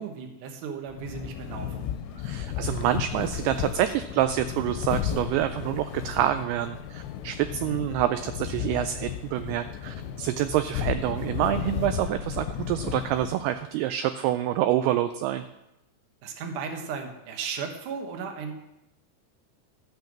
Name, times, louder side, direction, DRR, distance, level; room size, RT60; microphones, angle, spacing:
voice 1, 0.0-1.9 16.2-18.5, right 6 dB, 60° right, 4 dB, 2.3 m, -35 dB
sound 1, 0.9-13.6, left 10 dB, 85° left, 2.7 m, -34 dB
sound 2, 1.5-11.6, left 1 dB, 35° right, 1.1 m, -48 dB
voice 2, 2.2-15.5, right 12 dB, 85° right, 10 dB, 2.3 m, -27 dB
14.5 x 5.6 x 7.3 m, 0.92 s
omnidirectional pair, 4.9 m